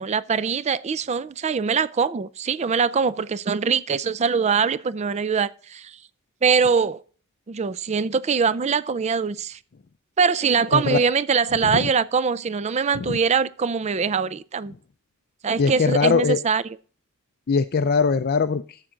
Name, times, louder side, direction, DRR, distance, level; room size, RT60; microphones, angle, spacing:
voice 1, 0.0-6.0 6.4-7.0 7.5-9.6 10.2-14.7 15.4-16.8, right 5 dB, 30° right, 0.4 m, -23 dB
voice 2, 15.6-16.4 17.5-18.9, left 5 dB, 45° left, 0.4 m, -21 dB
12.5 x 7.4 x 3.8 m
head